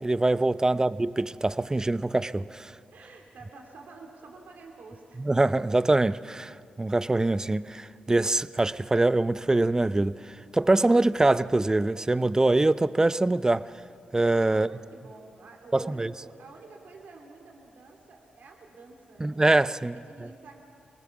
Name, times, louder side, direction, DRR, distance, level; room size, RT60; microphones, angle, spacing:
voice 1, 0.0-2.7 5.2-13.7 14.1-14.7 15.7-16.1 19.2-20.0, right 2 dB, 20° right, 0.6 m, -24 dB
voice 2, 2.9-5.3 14.5-19.4 19.9-20.6, right 3 dB, 70° right, 2.8 m, -49 dB
25.0 x 19.0 x 7.2 m
supercardioid pair, 55°, 3 cm